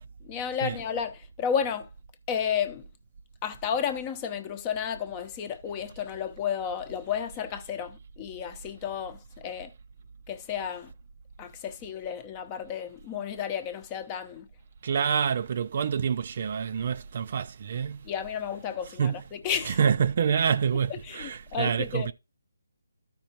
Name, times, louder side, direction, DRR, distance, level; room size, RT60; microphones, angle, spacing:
voice 1, 0.2-1.9 2.3-2.8 3.4-9.7 10.3-10.9 11.4-14.5 18.0-19.8 21.0-22.1, left 8 dB, 20° left, 0.8 m, -32 dB
voice 2, 14.8-18.1 19.0-19.2 19.7-22.1, right 7 dB, 45° right, 0.4 m, -27 dB
13.5 x 5.1 x 2.9 m
figure-of-eight pair, 155°, 0 cm